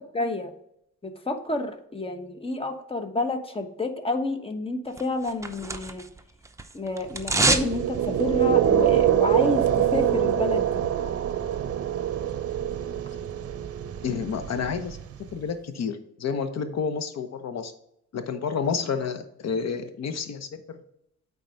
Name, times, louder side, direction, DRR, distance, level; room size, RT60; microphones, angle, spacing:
voice 1, 0.1-0.5 1.0-6.0 6.7-10.8, left 2 dB, 20° left, 7 dB, 1.1 m, -29 dB
sound 1, 5.0-6.2 6.4-7.7 8.0-8.1, right 3 dB, 10° right, 0.7 m, -25 dB
sound 2, 7.2-15.3, right 10 dB, 50° right, 0.7 m, -25 dB
voice 2, 14.0-15.0 15.3-17.7 18.1-20.8, left 6 dB, 60° left, 9 dB, 1.0 m, -30 dB
8.9 x 4.1 x 4.7 m, 0.75 s
cardioid pair, 90°, 30 cm